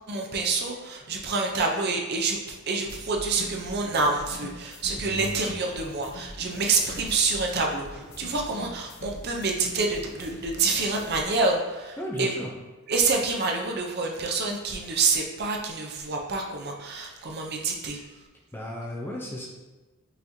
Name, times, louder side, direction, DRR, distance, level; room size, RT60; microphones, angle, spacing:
voice 1, 0.1-12.3 12.9-18.0, right 4 dB, 45° right, 1 dB, 0.5 m, -27 dB
sound 1, 2.9-11.2, left 1 dB, 70° left, 0.8 m, -43 dB
voice 2, 5.1-5.4 12.0-12.5 18.5-19.5, equal, 10° left, -2 dB, 0.5 m, -34 dB
5.6 x 2.9 x 2.7 m, 1.2 s
head